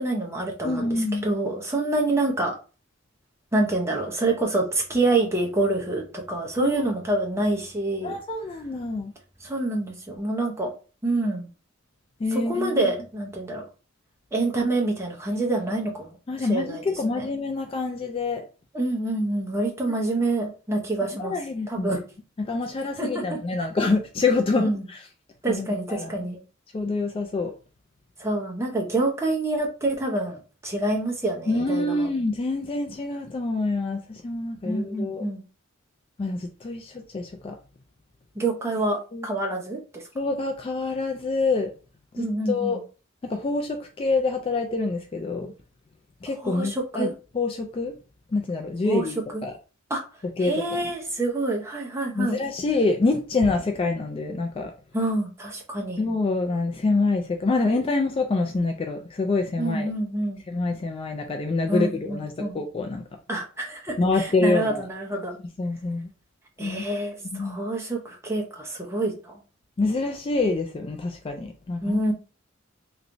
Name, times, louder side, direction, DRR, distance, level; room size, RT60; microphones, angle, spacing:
voice 1, 0.0-1.0 1.2-2.5 3.5-8.2 9.4-10.7 11.0-11.5 12.3-13.7 14.3-17.3 18.7-21.3 21.7-22.0 23.0-23.4 24.6-24.8 25.4-26.4 28.2-32.1 34.6-35.4 38.4-40.0 42.2-42.8 46.4-47.1 48.8-49.1 49.3-49.4 49.9-50.0 50.4-52.4 54.9-56.0 59.6-60.4 61.7-62.6 63.3-65.4 66.6-69.4 71.8-72.1, right 2 dB, 15° right, 0.7 m, -27 dB
voice 2, 0.6-1.3 6.6-6.8 8.0-9.1 12.2-12.9 16.3-18.5 21.2-22.0 22.4-25.0 25.5-26.1 26.7-27.5 31.5-35.2 36.2-37.6 39.1-39.3 40.1-41.7 42.1-42.8 43.2-45.5 46.2-47.9 48.3-49.6 50.4-50.9 52.1-54.7 56.0-59.9 60.5-63.0 64.0-64.9 65.6-66.1 66.6-66.8 67.2-67.6 69.8-72.0, left 3 dB, 25° left, 0.3 m, -26 dB
3.1 x 3.0 x 2.6 m
head